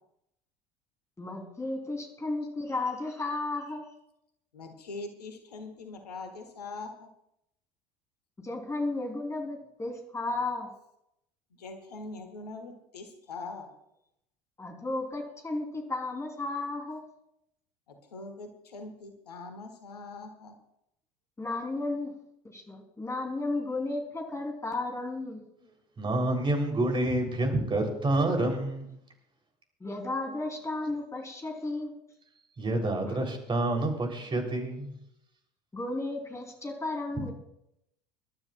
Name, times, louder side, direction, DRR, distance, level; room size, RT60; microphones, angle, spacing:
voice 1, 1.2-3.9 8.4-10.7 14.6-17.0 21.4-22.1 22.4-25.4 29.8-31.9 33.1-33.2 35.7-37.3, left 2 dB, 15° left, 2 dB, 3.3 m, -34 dB
voice 2, 4.5-7.1 11.6-13.7 17.9-20.5, left 3 dB, 75° left, 6 dB, 1.6 m, -42 dB
voice 3, 26.0-29.0 32.6-35.0, right 2 dB, 25° right, 3 dB, 3.3 m, -28 dB
25.5 x 12.5 x 2.4 m, 0.79 s
figure-of-eight pair, 70°, 20 cm